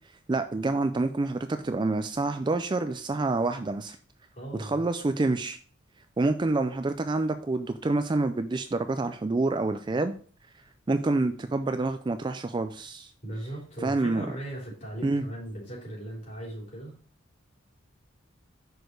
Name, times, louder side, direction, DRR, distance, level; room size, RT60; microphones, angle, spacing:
voice 1, 0.3-4.0 4.6-5.6 6.2-10.1 10.9-13.1 13.8-14.3 15.0-15.2, right 2 dB, 20° right, 9 dB, 0.3 m, -27 dB
voice 2, 4.3-4.9 13.2-16.9, right 1 dB, 40° left, -4 dB, 3.8 m, -38 dB
6.3 x 4.9 x 4.6 m, 0.42 s
head